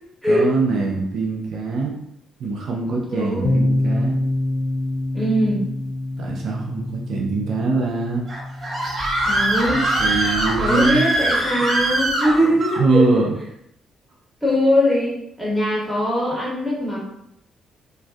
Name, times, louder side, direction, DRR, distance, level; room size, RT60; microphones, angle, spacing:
voice 1, 0.3-2.0 2.4-4.2 6.2-8.2 9.7-11.1 11.8-11.9 12.4-13.3, right 3 dB, 70° right, -2 dB, 0.4 m, -23 dB
voice 2, 3.1-3.5 5.1-5.6 9.2-9.8 10.6-13.2 14.4-15.1 15.4-17.0, equal, ahead, -8 dB, 1.4 m, -21 dB
sound 1, 3.4-11.1, left 2 dB, 60° left, 0.3 m, -27 dB
Screaming, 8.3-12.8, right 1 dB, 45° right, 0.8 m, -22 dB
2.5 x 2.3 x 2.2 m, 0.74 s
cardioid pair, 90°, 0 cm